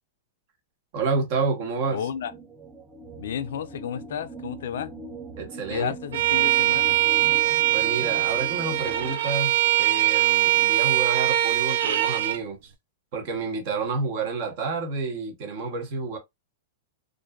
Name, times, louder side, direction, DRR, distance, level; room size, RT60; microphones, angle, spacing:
voice 1, 0.9-2.0 5.4-5.9 7.7-12.7 13.1-16.2, right 4 dB, 55° right, 0.9 m, -29 dB
sound 1, 1.8-9.2, right 1 dB, 10° right, 0.5 m, -41 dB
voice 2, 1.9-2.3 3.2-4.9 5.7-7.0, left 8 dB, 75° left, 0.3 m, -32 dB
Bowed string instrument, 6.1-12.4, right 15 dB, 80° right, 0.4 m, -22 dB
2.5 x 2.3 x 2.2 m
hypercardioid pair, 125°, 0 cm